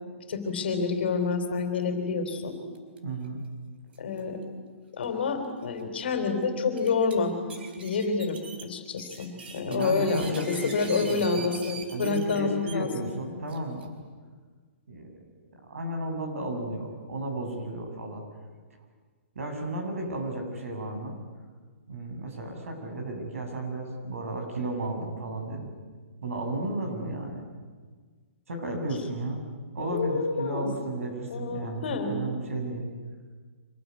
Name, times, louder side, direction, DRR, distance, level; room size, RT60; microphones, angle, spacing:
voice 1, 0.3-2.6 4.0-4.4 4.9-7.4 7.8-12.9 29.8-30.7 31.3-32.2, left 4 dB, 50° left, 7 dB, 3.7 m, -28 dB
sound 1, 2.8-3.0 3.2-3.3 3.9-4.2 5.0-5.1 5.6-5.7 6.6-7.1 7.5-12.8 13.5-13.9, right 5 dB, 45° right, 4.0 m, -43 dB
voice 2, 3.0-3.4 9.6-11.5 11.9-13.9 14.9-15.1 15.7-18.2 19.3-21.2 21.9-25.7 26.2-27.4 28.5-29.4 29.7-32.8, right 1 dB, 80° right, 3 dB, 7.8 m, -33 dB
25.5 x 20.0 x 9.6 m, 1.5 s
hypercardioid pair, 180°, 7 cm